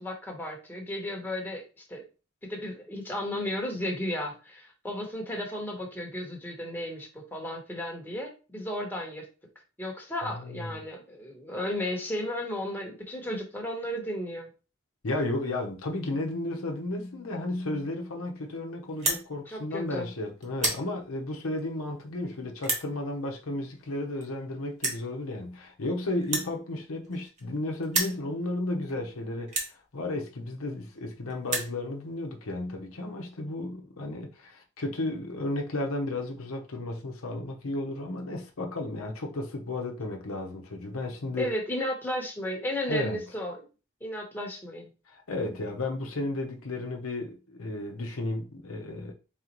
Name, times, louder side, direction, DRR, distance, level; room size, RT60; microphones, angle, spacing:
voice 1, 0.0-2.0 2.4-9.3 9.8-14.5 19.5-20.1 41.4-43.7 44.0-44.9, left 1 dB, 10° left, 1.0 m, -34 dB
voice 2, 10.2-10.8 15.0-41.5 42.9-43.2 45.1-49.1, left 2 dB, 85° left, 0.8 m, -33 dB
sound 1, 18.9-19.2 19.9-20.1 20.4-20.8 21.6-21.7 22.6-22.9 23.9-24.0 24.2-24.3 24.8-25.0 26.2-27.5 27.8-28.2 28.9-29.0 29.5-29.7 30.6-30.7 31.0-31.1 31.3-31.7, right 2 dB, 35° right, 1.2 m, -30 dB
4.0 x 3.9 x 3.0 m
head